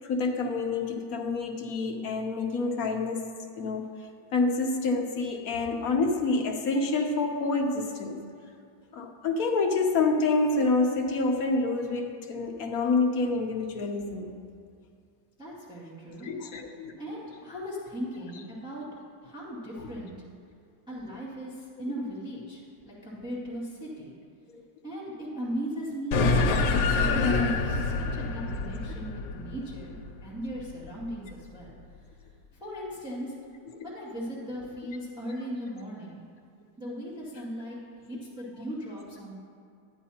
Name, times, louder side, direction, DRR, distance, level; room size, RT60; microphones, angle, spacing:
voice 1, 0.0-3.9 4.3-8.2 8.9-14.3 16.2-16.9 24.5-24.6 35.3-35.4, left 3 dB, 60° left, 3 dB, 1.1 m, -27 dB
voice 2, 15.4-16.3 17.0-18.9 19.2-20.1 20.9-24.1 24.8-31.8 32.6-33.3 33.8-36.2 36.8-39.3, equal, ahead, -9 dB, 2.1 m, -38 dB
sound 1, 26.1-30.9, left 3 dB, 80° left, 1.4 m, -26 dB
11.5 x 10.0 x 2.8 m, 2.3 s
omnidirectional pair, 2.0 m